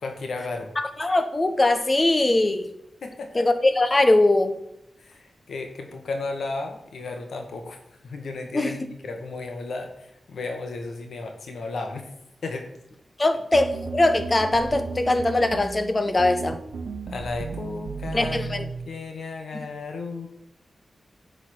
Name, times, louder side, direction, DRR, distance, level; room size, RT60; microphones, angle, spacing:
voice 1, 0.0-0.7 3.0-3.5 5.0-7.8 8.0-12.1 12.4-12.7 17.1-20.3, left 3 dB, 80° left, 1.4 m, -34 dB
voice 2, 0.8-2.7 3.3-4.6 8.5-8.7 13.2-16.6 18.1-18.6, left 2 dB, 25° left, 0.9 m, -21 dB
sound 1, 13.5-18.9, right 4 dB, 75° right, 0.9 m, -35 dB
10.0 x 4.0 x 6.1 m
wide cardioid pair, 125°, 0 cm